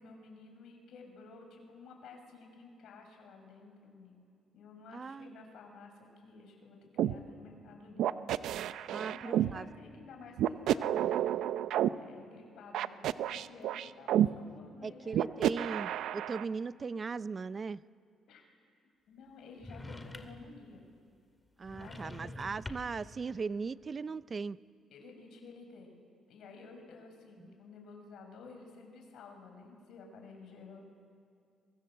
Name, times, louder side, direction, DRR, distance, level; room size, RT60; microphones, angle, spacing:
voice 1, 0.0-4.3 4.5-8.3 8.9-11.0 11.9-15.4 18.3-18.4 19.1-20.8 21.7-22.6 24.9-30.8, left 4 dB, 75° left, 3 dB, 6.7 m, -53 dB
voice 2, 4.9-5.4 8.9-9.7 14.8-17.8 21.6-24.6 27.4-27.5, right 5 dB, 35° right, 17 dB, 0.6 m, -38 dB
sound 1, 7.0-7.1 8.0-9.5 10.4-11.9 12.7-14.3 15.1-16.4, right 11 dB, 80° right, 0.8 m, -30 dB
sound 2, 19.6-20.5 21.6-23.1, left 2 dB, 15° left, 2.6 m, -46 dB
30.0 x 24.0 x 7.9 m, 2.4 s
cardioid pair, 90°, 0 cm